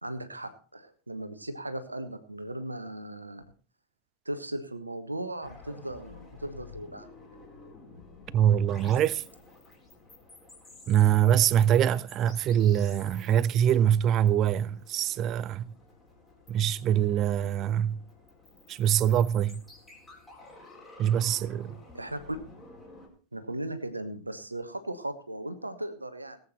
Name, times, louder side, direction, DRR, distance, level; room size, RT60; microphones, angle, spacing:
voice 1, 0.0-3.4 4.2-7.1 21.9-22.4 23.3-26.4, right 1 dB, 85° right, 1.3 m, -37 dB
sound 1, 5.4-23.1, left 3 dB, 10° left, 4.4 m, -52 dB
voice 2, 8.3-9.2 10.9-15.7 16.5-18.0 18.7-19.6 21.0-21.8, right 10 dB, 35° right, 0.6 m, -24 dB
18.5 x 8.6 x 4.4 m
figure-of-eight pair, 90°, 0 cm